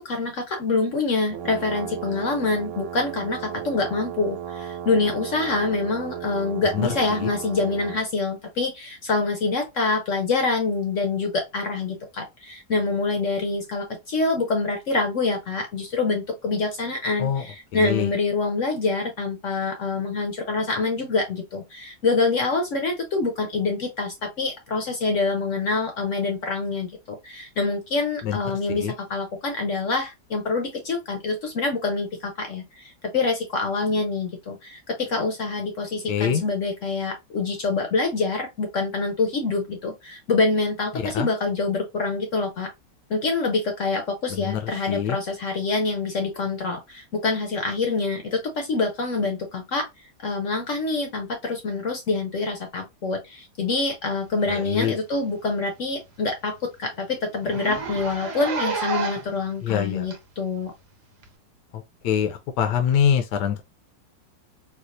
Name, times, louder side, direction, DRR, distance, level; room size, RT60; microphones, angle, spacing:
voice 1, 0.0-42.7 43.1-49.9 50.2-60.7, left 3 dB, 60° left, 0.8 m, -26 dB
sound 1, 1.3-8.1, right 10 dB, 80° right, 1.2 m, -35 dB
voice 2, 17.7-18.1 28.2-28.4 28.7-28.9 36.1-36.4 41.1-41.3 44.3-44.6 44.9-45.2 54.5-54.9 59.6-60.0 62.0-63.6, left 8 dB, 75° left, 1.2 m, -24 dB
Zipper (clothing), 54.8-55.0 55.3-55.4 55.8-55.9 56.2-56.3 56.6-56.7 57.4-59.4 60.1-60.2 61.2-61.3, right 3 dB, 55° right, 1.0 m, -30 dB
4.2 x 2.4 x 2.5 m
omnidirectional pair, 1.9 m